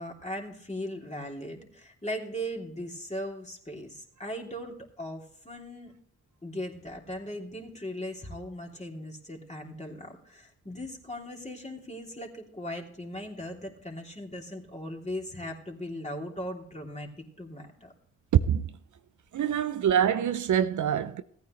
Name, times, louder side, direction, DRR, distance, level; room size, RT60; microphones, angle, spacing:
voice 1, 0.0-5.9 6.4-17.9, equal, 20° left, 3.1 m, -38 dB
voice 2, 19.3-21.2, right 9 dB, 60° right, 0.6 m, -26 dB
15.5 x 9.4 x 3.2 m
supercardioid pair, 40°, 33 cm